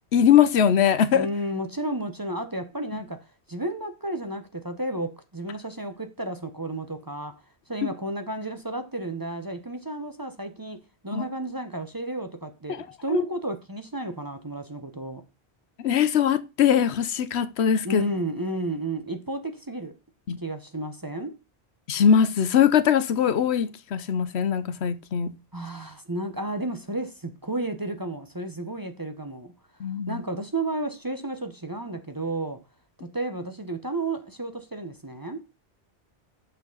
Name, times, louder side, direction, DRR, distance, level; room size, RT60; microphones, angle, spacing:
voice 1, 0.1-1.3 7.8-7.9 11.1-11.2 13.1-13.2 15.8-18.0 20.3-20.4 21.9-25.3 29.8-30.2, left 8 dB, 80° left, 1.0 m, -21 dB
voice 2, 1.1-7.3 7.7-10.8 11.0-15.2 17.8-19.9 20.4-21.3 25.5-29.5 30.1-32.6 33.1-35.4, right 1 dB, 20° right, 0.8 m, -32 dB
6.8 x 6.0 x 3.9 m
omnidirectional pair, 1.1 m